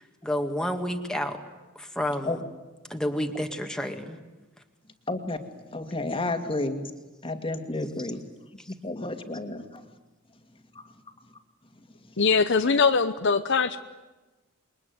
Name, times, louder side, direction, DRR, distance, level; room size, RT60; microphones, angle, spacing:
voice 1, 0.0-1.4 1.8-2.4 2.9-4.2 7.7-7.9 8.6-8.7, equal, 5° left, 4 dB, 2.1 m, -30 dB
voice 2, 5.1-5.4 5.7-6.9 7.2-8.2 8.7-9.8 10.8-10.9, left 2 dB, 25° left, 7 dB, 2.2 m, -31 dB
voice 3, 12.2-13.8, left 5 dB, 60° left, 10 dB, 0.9 m, -22 dB
28.0 x 22.5 x 9.6 m, 1.2 s
head